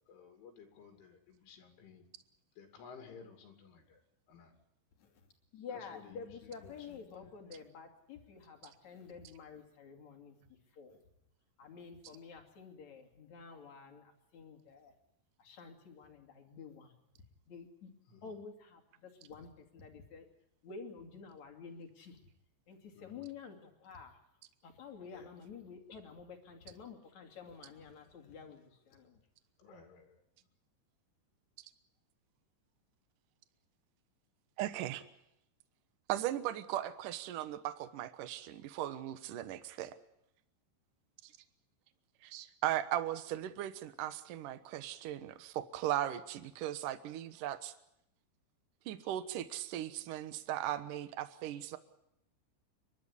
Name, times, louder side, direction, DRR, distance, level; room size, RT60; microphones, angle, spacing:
voice 1, 0.1-2.0 2.6-3.8 4.3-4.5 6.2-6.3 7.1-7.3 18.1-18.2 22.9-23.1 25.1-25.3 29.6-30.1, left 6 dB, 80° left, 4 dB, 5.2 m, -55 dB
voice 2, 5.5-10.4 10.7-11.0 11.6-14.9 15.4-16.9 17.5-17.9 18.2-20.3 20.6-22.2 22.7-24.2 24.6-29.2, left 5 dB, 45° left, 4 dB, 3.5 m, -50 dB
voice 3, 34.6-35.0 36.1-40.0 41.2-41.3 42.2-47.7 48.9-51.8, right 12 dB, 75° right, 12 dB, 1.9 m, -38 dB
29.5 x 12.5 x 9.9 m, 0.80 s
omnidirectional pair, 5.5 m